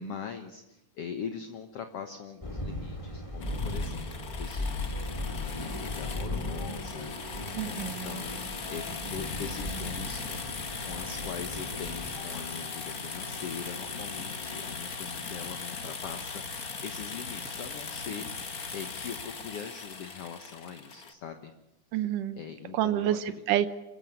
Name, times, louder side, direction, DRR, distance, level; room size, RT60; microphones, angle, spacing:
voice 1, 0.0-10.4 10.8-21.5 21.9-22.0 22.3-23.3, left 7 dB, 55° left, 7 dB, 2.0 m, -42 dB
sound 1, 2.4-12.1, left 1 dB, 10° left, 2.4 m, -37 dB
sound 2, 3.4-21.1, left 4 dB, 35° left, 1.7 m, -39 dB
sound 3, 4.8-14.7, left 1 dB, 75° left, 8.1 m, -48 dB
voice 2, 7.6-8.1 21.9-22.4 22.7-23.7, right 12 dB, 85° right, 13 dB, 2.4 m, -28 dB
26.5 x 16.0 x 8.1 m, 1.0 s
omnidirectional pair, 3.6 m